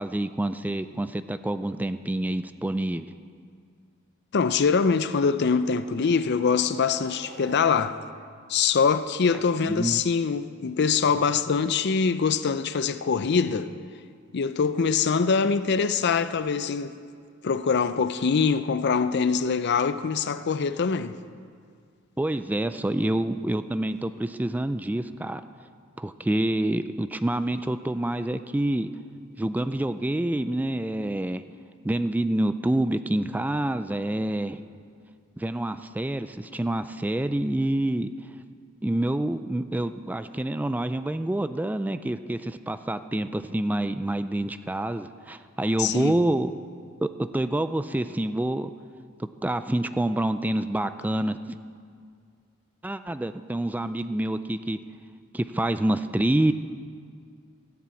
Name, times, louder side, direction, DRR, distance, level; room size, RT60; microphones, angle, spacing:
voice 1, 0.0-3.1 9.6-10.0 22.2-25.4 26.0-28.9 29.4-31.4 31.8-34.6 35.4-38.1 38.8-46.5 47.0-48.7 49.2-51.6 52.8-54.8 55.3-56.5, right 1 dB, 10° right, 0.3 m, -27 dB
voice 2, 4.3-8.0 8.5-13.7 14.3-16.9 17.4-21.2 45.8-46.2, left 5 dB, 55° left, 0.5 m, -24 dB
sound 1, 5.3-8.2, right 1 dB, 60° right, 1.9 m, -48 dB
14.5 x 7.6 x 8.3 m
head